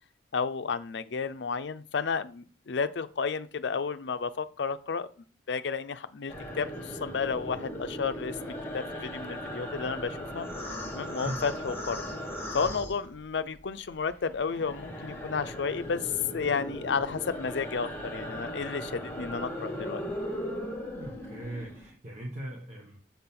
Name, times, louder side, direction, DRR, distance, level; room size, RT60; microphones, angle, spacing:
voice 1, 0.3-5.1 5.5-10.5 10.9-12.0 12.5-20.0, left 5 dB, 70° left, 12 dB, 0.5 m, -32 dB
sound 1, 6.3-13.6 13.9-21.9, equal, 15° left, 1.6 m, -38 dB
voice 2, 20.9-23.0, right 1 dB, 40° right, -2 dB, 1.2 m, -39 dB
7.2 x 3.8 x 5.8 m, 0.40 s
head